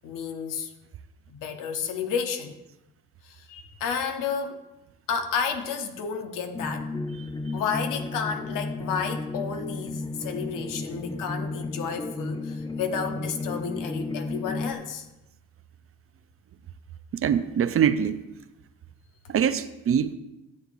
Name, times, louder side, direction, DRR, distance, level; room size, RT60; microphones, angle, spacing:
voice 1, 0.0-0.7 1.3-2.6 3.2-4.6 5.1-6.9 7.5-15.0, left 6 dB, 80° left, 0.9 m, -31 dB
sound 1, 6.5-14.7, left 3 dB, 15° left, 0.6 m, -33 dB
voice 2, 17.2-18.2 19.3-20.1, right 8 dB, 45° right, 0.5 m, -23 dB
12.5 x 7.5 x 2.6 m
supercardioid pair, 70°, 31 cm